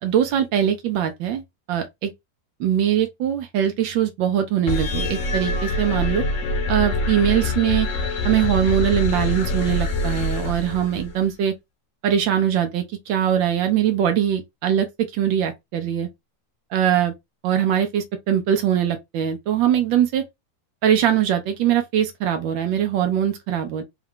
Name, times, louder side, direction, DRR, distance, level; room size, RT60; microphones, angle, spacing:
voice 1, 0.0-1.4 1.7-2.1 2.6-6.2 6.7-7.9 8.2-11.5 12.0-16.1 16.7-17.1 17.4-20.2 20.8-23.8, right 10 dB, 85° right, 1.4 m, -22 dB
sound 1, 4.7-11.3, left 2 dB, 55° left, 1.0 m, -25 dB
4.5 x 2.4 x 3.6 m
omnidirectional pair, 2.0 m